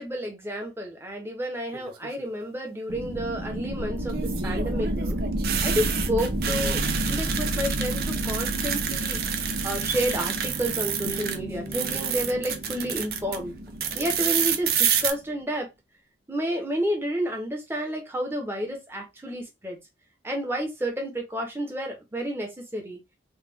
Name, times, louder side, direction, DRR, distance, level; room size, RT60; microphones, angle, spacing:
voice 1, 0.0-5.2 5.6-6.8 7.1-9.2 9.6-13.5 13.9-15.7 16.3-19.8 20.2-23.0, equal, 15° right, 0.9 m, -30 dB
sound 1, 1.7-2.2 4.1-11.4 11.7-13.4 13.8-15.1, right 8 dB, 60° right, 0.5 m, -29 dB
sound 2, 2.9-15.2, right 1 dB, 80° right, 1.0 m, -31 dB
Guitar, 11.1-14.1, right 1 dB, 35° left, 0.5 m, -42 dB
3.2 x 2.4 x 3.4 m
head